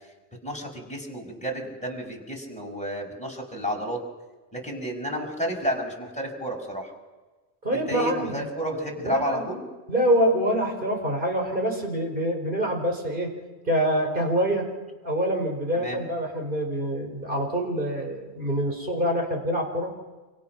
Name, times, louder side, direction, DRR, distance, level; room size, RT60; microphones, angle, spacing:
voice 1, 0.4-4.0 4.5-6.9 7.7-9.7 15.7-16.0, equal, 5° left, 0 dB, 5.6 m, -31 dB
voice 2, 7.6-8.5 9.0-9.5 9.9-13.3 13.6-14.7 15.0-19.9, equal, 50° right, 2 dB, 5.2 m, -25 dB
28.5 x 27.0 x 6.0 m, 1.2 s
omnidirectional pair, 1.1 m